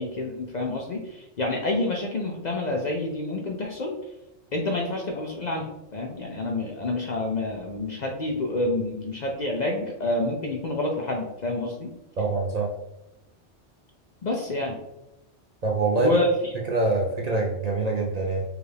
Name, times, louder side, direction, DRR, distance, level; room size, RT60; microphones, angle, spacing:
voice 1, 0.0-3.9 4.5-5.7 5.9-11.9 14.2-14.8 16.0-16.5, left 2 dB, 55° left, 1 dB, 0.5 m, -28 dB
voice 2, 12.2-12.7 15.6-16.1 16.7-18.4, right 3 dB, 50° right, -1 dB, 0.5 m, -25 dB
4.7 x 2.4 x 3.3 m, 0.89 s
omnidirectional pair, 1.2 m